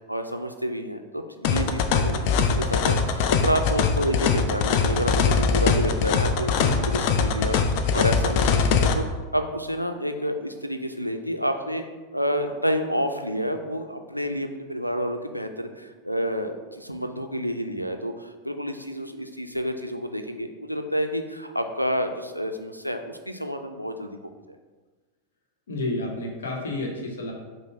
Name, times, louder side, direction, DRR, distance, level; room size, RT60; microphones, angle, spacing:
voice 1, 0.1-6.5 6.9-9.1 9.3-11.8 12.1-24.6, equal, 90° right, 6 dB, 0.3 m, -29 dB
sound 1, 1.4-8.9, left 5 dB, 45° left, 0.3 m, -22 dB
voice 2, 6.6-6.9 25.7-27.3, left 2 dB, 65° left, 0 dB, 0.8 m, -30 dB
5.1 x 2.0 x 4.5 m, 1.3 s
figure-of-eight pair, 90°, 0 cm